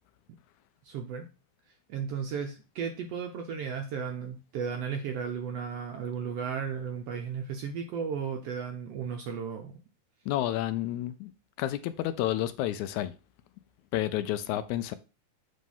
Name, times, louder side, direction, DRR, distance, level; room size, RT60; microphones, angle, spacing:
voice 1, 0.8-1.3 1.9-9.7, right 6 dB, 75° right, 1.5 m, -34 dB
voice 2, 10.3-11.3 11.6-13.1 13.9-14.9, left 13 dB, 80° left, 1.9 m, -30 dB
7.5 x 3.1 x 5.4 m
omnidirectional pair, 3.5 m